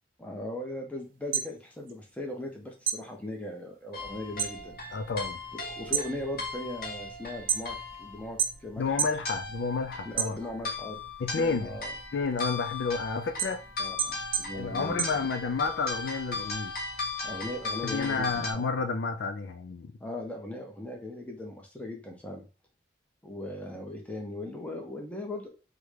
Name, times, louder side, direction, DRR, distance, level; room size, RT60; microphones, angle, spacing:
voice 1, 0.2-4.7 5.7-9.1 10.0-11.0 11.3-11.9 13.8-15.0 17.2-18.6 20.0-22.4 23.2-25.5, left 1 dB, 10° left, 0.6 m, -38 dB
sound 1, 1.1-2.5 2.8-4.6 4.9-5.4 5.8-8.0 8.4-9.2 9.6-10.8 11.3-15.8, right 8 dB, 45° right, 0.4 m, -32 dB
sound 2, 3.9-18.5, left 3 dB, 50° left, 0.8 m, -38 dB
voice 2, 4.9-5.4 8.8-10.4 11.2-11.7 12.1-13.6 14.5-16.7 17.8-19.9, left 4 dB, 70° left, 0.4 m, -30 dB
3.6 x 2.1 x 3.2 m
head